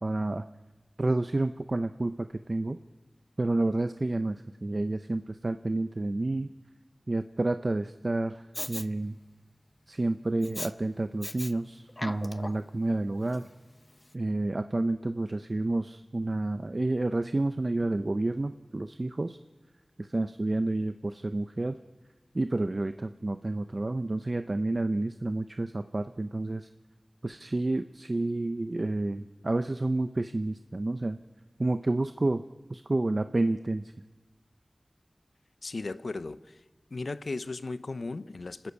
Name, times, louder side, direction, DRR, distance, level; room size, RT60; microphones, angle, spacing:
voice 1, 0.0-0.4 1.0-2.8 3.4-6.5 7.1-9.2 9.9-13.4 14.1-19.4 20.0-21.8 22.3-26.7 27.2-31.2 31.6-32.4 32.7-33.9, right 2 dB, 50° right, 9 dB, 0.6 m, -30 dB
Respiratory sounds, 8.5-8.9 10.4-10.7 11.2-11.5 11.9-12.7 13.3-13.4, left 1 dB, 35° left, 0.7 m, -38 dB
voice 2, 35.6-36.4 36.9-38.7, left 3 dB, 85° left, 14 dB, 0.6 m, -36 dB
29.0 x 13.0 x 8.3 m, 1.2 s
wide cardioid pair, 45°, 0 cm